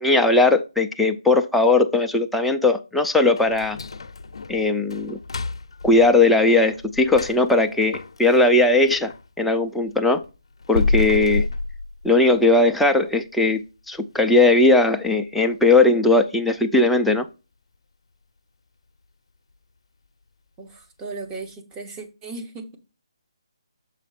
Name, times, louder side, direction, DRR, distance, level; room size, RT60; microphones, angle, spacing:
voice 1, 0.0-3.8 4.5-5.2 5.8-9.1 9.4-10.2 10.7-11.5 12.0-13.6 13.9-17.3, left 2 dB, ahead, 0.3 m, -18 dB
sound 1, 3.3-9.3 9.7-12.5 12.9-13.0 13.5-13.6 14.1-14.4 14.7-14.8 15.4-15.5, left 3 dB, 75° left, 0.6 m, -30 dB
voice 2, 20.6-22.8, right 3 dB, 15° right, 0.9 m, -36 dB
7.3 x 4.2 x 4.1 m
hypercardioid pair, 165°, 3 cm